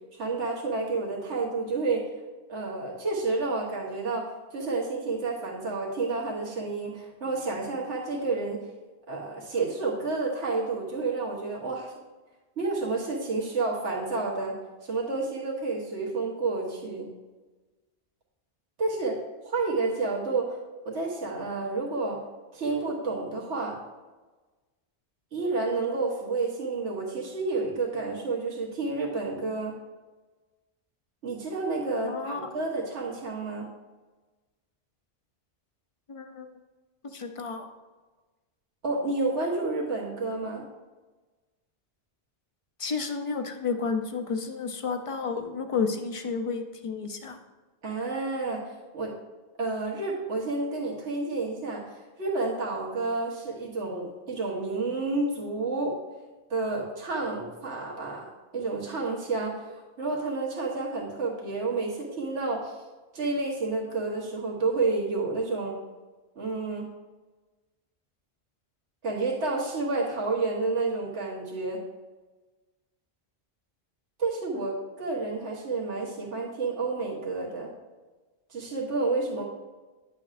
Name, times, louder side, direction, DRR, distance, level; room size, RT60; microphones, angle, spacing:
voice 1, 0.2-2.1 2.5-8.6 9.1-11.9 12.6-14.5 14.8-17.0 18.8-19.2 19.4-20.6 20.8-22.2 22.5-23.8 25.3-29.8 31.2-33.7 38.8-40.6 47.8-48.6 48.9-49.1 49.6-51.9 52.2-55.9 56.5-59.6 60.0-62.8 63.1-65.8 66.4-66.9 69.0-71.8 74.2-77.7 78.5-79.4, right 3 dB, 85° right, -4 dB, 1.6 m, -30 dB
voice 2, 32.0-32.4 36.1-36.5 37.1-37.7 42.8-47.4 74.6-74.7 79.4-79.5, left 5 dB, 40° left, 6 dB, 0.5 m, -31 dB
9.9 x 6.9 x 2.5 m, 1.2 s
omnidirectional pair, 1.1 m